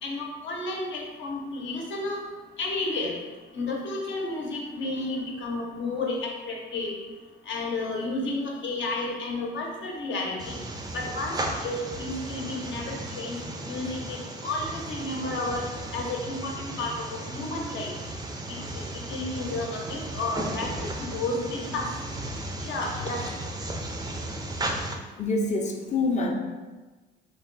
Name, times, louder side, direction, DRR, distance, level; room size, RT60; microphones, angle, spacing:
voice 1, 0.0-2.2 2.6-3.1 3.5-6.9 7.5-10.6 10.9-13.4 13.7-15.6 15.9-17.9 18.5-21.9 22.6-23.2, left 2 dB, 70° left, -1 dB, 0.8 m, -32 dB
sound 1, 10.4-25.0, right 1 dB, 20° right, 0.4 m, -35 dB
voice 2, 25.2-26.3, left 2 dB, 35° left, 2 dB, 0.6 m, -26 dB
3.2 x 2.2 x 3.8 m, 1.3 s
cardioid pair, 90°, 20 cm